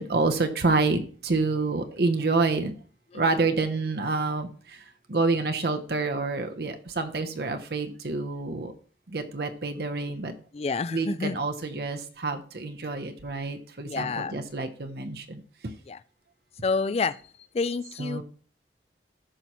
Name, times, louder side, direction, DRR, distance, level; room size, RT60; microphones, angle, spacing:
voice 1, 0.0-2.7 3.1-8.7 9.1-10.3 10.9-15.7 18.0-18.2, right 3 dB, 60° right, 0.8 m, -28 dB
voice 2, 10.5-11.4 13.8-14.4 15.9-16.0 16.6-17.2 17.5-18.2, left 4 dB, 35° left, 0.3 m, -28 dB
13.5 x 5.6 x 3.0 m
head